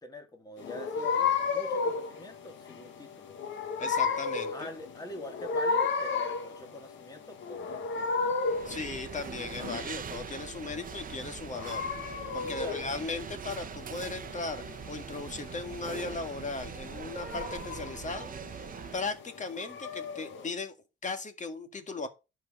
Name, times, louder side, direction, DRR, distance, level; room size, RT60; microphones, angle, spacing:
voice 1, 0.0-3.4 4.1-8.4 12.4-12.8, left 1 dB, 20° left, 2.5 m, -45 dB
sound 1, 0.6-20.5, left 5 dB, 75° left, 1.8 m, -34 dB
voice 2, 3.8-4.7 8.7-11.8 12.3-20.7 21.0-22.1, left 3 dB, 40° left, 1.9 m, -37 dB
sound 2, 8.5-19.2, right 8 dB, 45° right, 0.9 m, -42 dB
11.5 x 4.8 x 5.5 m
cardioid pair, 90°, 20 cm